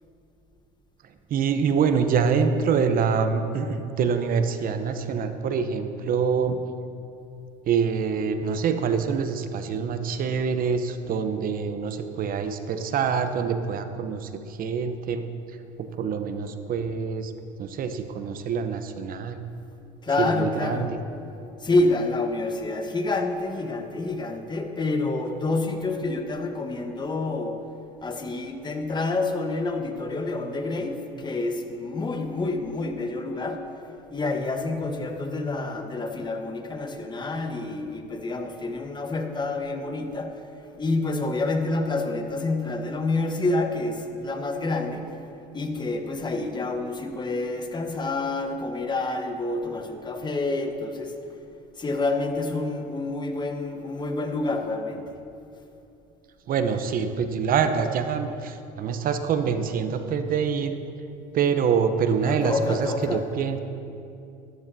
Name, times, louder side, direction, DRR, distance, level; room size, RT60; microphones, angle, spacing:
voice 1, 1.3-6.6 7.6-15.3 15.8-17.3 17.6-19.4 20.2-21.0 56.5-60.8 61.3-63.6, right 6 dB, 50° right, 8 dB, 0.9 m, -25 dB
voice 2, 20.0-20.9 21.6-27.6 28.0-33.7 34.1-40.4 40.8-45.2 45.5-51.2 51.8-55.2 62.2-63.2, left 2 dB, 25° left, 5 dB, 1.2 m, -28 dB
14.0 x 11.5 x 2.8 m, 2.7 s
supercardioid pair, 85°, 19 cm